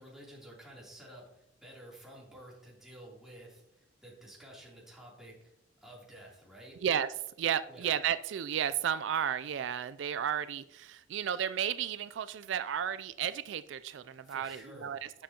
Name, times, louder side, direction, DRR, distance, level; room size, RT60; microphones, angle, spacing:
voice 1, 0.0-5.4 5.8-6.8 7.7-7.9 14.2-14.9, right 1 dB, ahead, -6 dB, 3.1 m, -51 dB
voice 2, 6.8-15.2, right 9 dB, 70° right, 14 dB, 0.3 m, -33 dB
11.5 x 7.7 x 2.9 m, 0.83 s
head